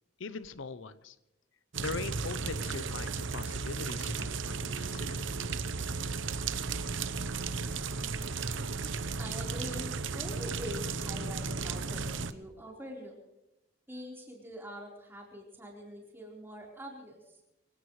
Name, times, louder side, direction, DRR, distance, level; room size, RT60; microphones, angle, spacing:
voice 1, 0.2-1.2 1.8-5.3, left 4 dB, 80° left, 14 dB, 0.7 m, -41 dB
sound 1, 1.7-12.3, right 4 dB, 75° right, 0.9 m, -35 dB
voice 2, 9.2-13.1 13.9-17.4, equal, 10° right, -2 dB, 4.2 m, -44 dB
25.0 x 17.0 x 3.2 m, 0.95 s
head